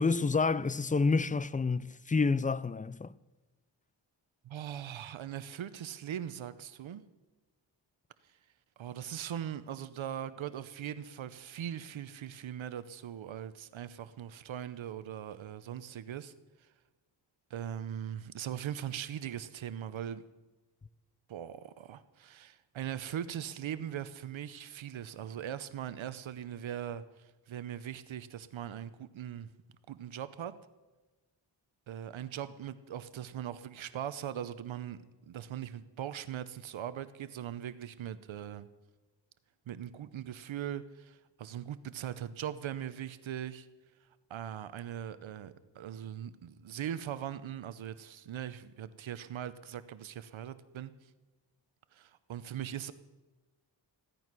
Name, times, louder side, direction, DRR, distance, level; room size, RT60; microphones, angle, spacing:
voice 1, 0.0-3.1, left 4 dB, 20° left, 0.4 m, -28 dB
voice 2, 4.4-7.0 8.2-8.4 8.8-16.3 16.6-16.7 17.5-20.2 21.3-29.5 29.9-30.6 31.9-38.7 39.7-43.7 44.3-51.1 51.9-52.9, right 10 dB, 80° right, 0.8 m, -40 dB
16.0 x 12.0 x 6.0 m
wide cardioid pair, 85°, 46 cm